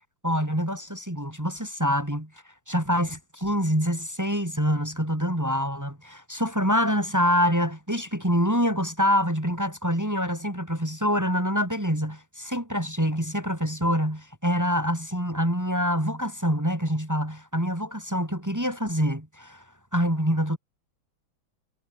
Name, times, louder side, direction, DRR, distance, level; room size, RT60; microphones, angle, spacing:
voice 1, 0.2-2.3 2.7-19.6 19.9-20.6, equal, 10° right, 3.0 m, -26 dB
omnidirectional pair, 2.3 m